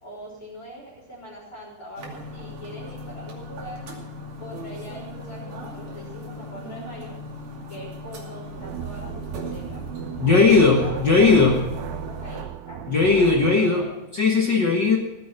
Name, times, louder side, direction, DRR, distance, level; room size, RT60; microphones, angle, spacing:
voice 1, 0.0-3.8 4.4-7.2 7.7-9.8 10.2-11.6 11.9-12.8 13.1-14.0, right 1 dB, 20° left, -9 dB, 4.2 m, -41 dB
sound 1, 2.0-12.4, left 2 dB, 55° right, 3.9 m, -38 dB
sound 2, 8.5-13.7, right 12 dB, 75° right, 2.2 m, -35 dB
voice 2, 10.2-11.5 12.9-13.8 14.1-15.0, left 4 dB, 65° left, 0 dB, 1.0 m, -17 dB
16.5 x 10.5 x 5.8 m, 1.0 s
omnidirectional pair, 4.5 m